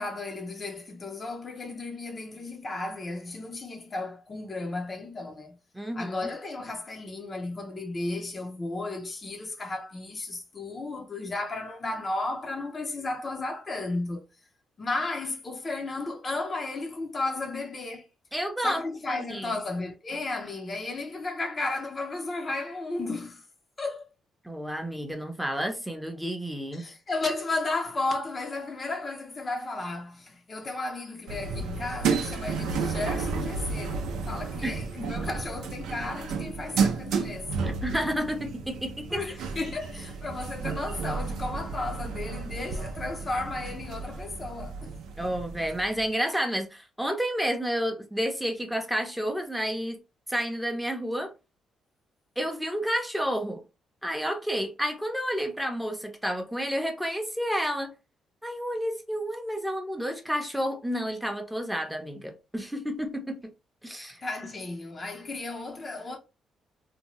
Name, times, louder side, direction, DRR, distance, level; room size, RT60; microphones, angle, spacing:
voice 1, 0.0-5.6 5.9-14.2 14.8-18.1 18.6-23.4 23.8-24.1 26.7-37.5 39.1-44.9 45.2-45.3 64.2-66.2, left 2 dB, 35° left, 0.5 m, -34 dB
voice 2, 5.7-6.3 18.3-18.8 19.1-19.5 24.4-26.9 34.6-35.1 37.6-39.2 45.2-50.0 50.3-51.3 52.4-53.6 54.0-57.9 58.4-63.5 63.8-64.2, equal, 5° right, 0.6 m, -30 dB
sound 1, 31.3-46.1, right 5 dB, 85° right, 0.5 m, -32 dB
2.7 x 2.1 x 3.0 m
cardioid pair, 90°, 0 cm